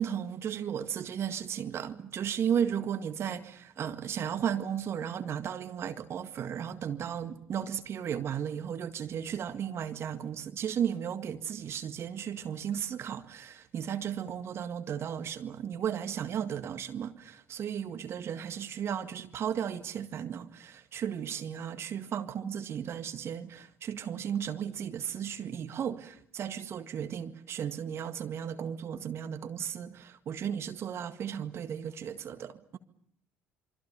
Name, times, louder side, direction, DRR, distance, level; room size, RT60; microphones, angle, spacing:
voice 1, 0.0-32.8, right 8 dB, 50° right, 1.8 m, -35 dB
27.5 x 24.5 x 7.0 m
hypercardioid pair, 55°, 6 cm